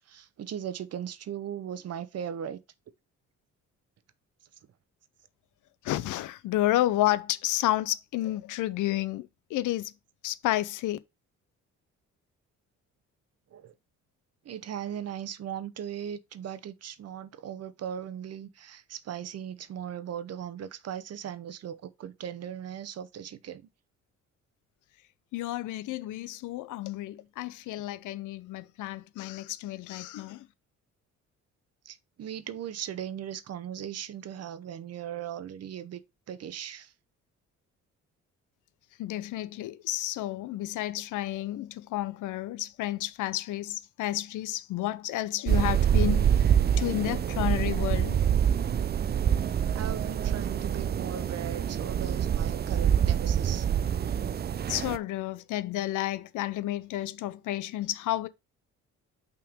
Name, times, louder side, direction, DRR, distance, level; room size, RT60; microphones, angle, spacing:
voice 1, 0.1-2.6 13.5-13.7 14.4-23.7 31.9-36.0 36.3-36.9 49.7-53.7, right 9 dB, 55° right, 0.8 m, -38 dB
voice 2, 5.8-9.9 10.2-11.0 25.3-30.4 39.0-46.3 46.8-48.2 54.7-58.3, left 15 dB, 85° left, 0.6 m, -31 dB
sound 1, 45.5-55.0, right 9 dB, 35° right, 0.4 m, -26 dB
5.8 x 3.7 x 5.1 m
cardioid pair, 90°, 30 cm